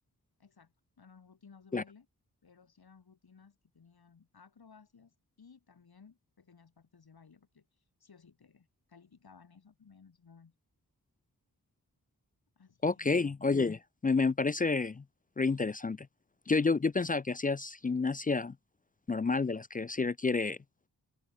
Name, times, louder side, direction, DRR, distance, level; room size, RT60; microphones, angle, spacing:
voice 1, 0.4-2.1 2.4-7.7 8.0-10.5 12.6-13.3, left 5 dB, 80° left, 5.4 m, -59 dB
voice 2, 12.8-15.0 15.4-16.1 16.5-18.6 19.1-20.6, left 4 dB, 25° left, 0.4 m, -29 dB
open air
wide cardioid pair, 75°, 37 cm